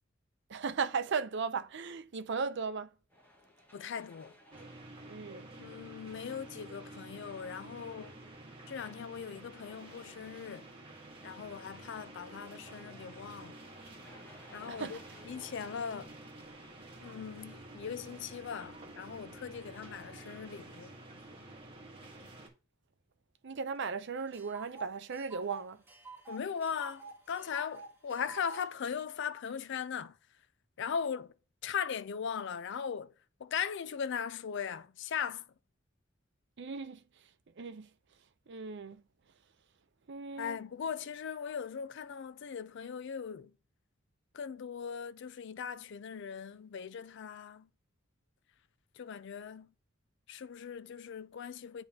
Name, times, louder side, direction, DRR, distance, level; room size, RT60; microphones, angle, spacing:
voice 1, 0.5-2.9 5.1-5.5 14.7-15.0 23.4-25.8 36.6-37.3 37.6-37.9 38.5-39.0 40.1-40.6, right 5 dB, 60° right, 0.6 m, -37 dB
sound 1, 3.1-20.5, left 1 dB, 10° left, 1.4 m, -62 dB
voice 2, 3.7-4.3 5.6-8.2 8.7-10.7 11.2-13.6 14.5-15.0 15.2-16.1 17.0-21.0 26.3-30.2 30.8-31.3 31.6-33.1 33.4-35.5 40.4-43.5 44.3-47.7 48.9-49.7 50.3-51.8, left 7 dB, 60° left, 0.4 m, -39 dB
sound 2, 4.5-22.5, right 2 dB, 25° right, 1.6 m, -50 dB
Tick, 23.8-23.9 24.2-28.7, right 4 dB, 10° right, 2.3 m, -50 dB
10.5 x 3.5 x 2.8 m
head